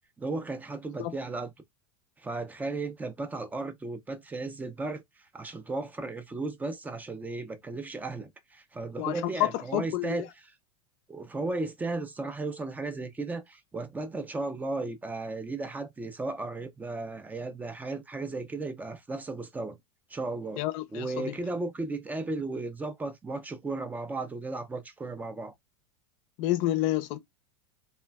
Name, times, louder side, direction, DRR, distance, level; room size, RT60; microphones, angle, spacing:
voice 1, 0.2-1.5 2.2-5.0 5.3-10.3 11.1-19.8 20.1-20.6 20.9-25.5, right 3 dB, 10° right, 0.4 m, -35 dB
voice 2, 9.0-10.3 20.6-21.4 26.4-27.2, left 15 dB, 50° left, 0.5 m, -29 dB
3.2 x 2.0 x 2.2 m
supercardioid pair, 135°, 16 cm